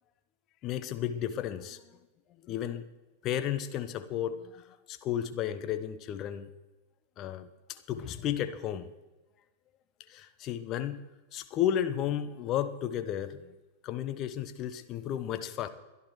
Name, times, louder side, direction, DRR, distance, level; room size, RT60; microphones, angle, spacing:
voice 1, 0.6-2.0 2.4-2.9 3.2-6.5 7.2-8.9 10.1-11.0 11.3-13.5 13.8-15.7, left 10 dB, 35° left, 11 dB, 0.8 m, -33 dB
23.5 x 11.0 x 3.1 m, 1.1 s
figure-of-eight pair, 90°, 0 cm